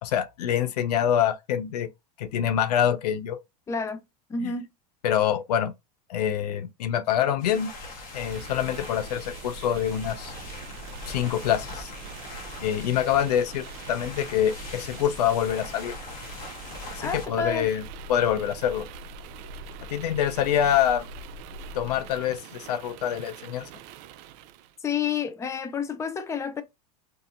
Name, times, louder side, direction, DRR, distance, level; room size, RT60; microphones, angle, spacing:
voice 1, 0.0-1.9 2.2-3.4 4.4-4.5 5.0-5.7 6.1-7.7 8.1-10.3 11.1-11.9 12.6-15.9 16.9-17.8 18.1-18.9 19.9-21.1 21.7-23.7, left 10 dB, 80° left, 0.5 m, -25 dB
voice 2, 3.7-4.0 4.3-4.7 17.0-17.7 24.8-26.6, left 6 dB, 15° left, 0.4 m, -29 dB
sound 1, 7.4-17.2, left 3 dB, 45° left, 1.1 m, -42 dB
sound 2, 8.0-24.7, right 4 dB, 55° right, 0.4 m, -42 dB
2.7 x 2.6 x 2.4 m
hypercardioid pair, 100°, 20 cm